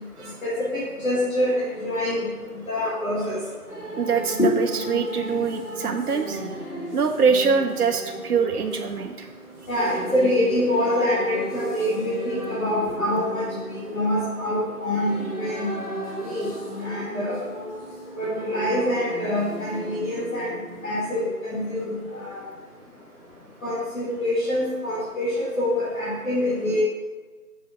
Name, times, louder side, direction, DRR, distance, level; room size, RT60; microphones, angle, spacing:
voice 1, 0.4-2.3 2.7-3.4 4.4-4.5 9.7-13.4 13.8-15.7 16.2-16.5 16.8-17.4 18.2-20.5 20.8-22.4 23.6-26.8, left 1 dB, 60° left, -9 dB, 1.8 m, -25 dB
sound 1, 3.7-21.3, right 1 dB, 80° left, 1.9 m, -35 dB
voice 2, 4.0-6.4 6.9-9.3, right 5 dB, 75° right, 5 dB, 0.6 m, -24 dB
6.5 x 2.7 x 5.4 m, 1.3 s
figure-of-eight pair, 175°, 46 cm